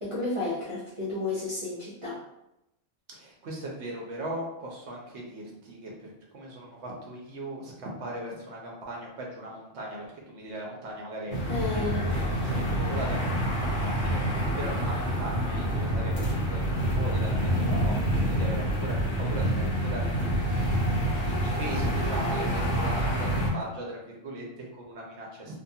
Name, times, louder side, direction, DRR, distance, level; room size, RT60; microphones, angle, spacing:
voice 1, 0.0-2.2 11.5-12.1, left 3 dB, 35° right, -11 dB, 0.6 m, -32 dB
voice 2, 3.1-11.4 11.7-20.8 21.2-25.6, right 1 dB, 70° right, -2 dB, 0.9 m, -39 dB
sound 1, 11.3-23.5, equal, 65° left, 1.3 m, -27 dB
2.7 x 2.2 x 2.6 m, 0.87 s
omnidirectional pair, 1.3 m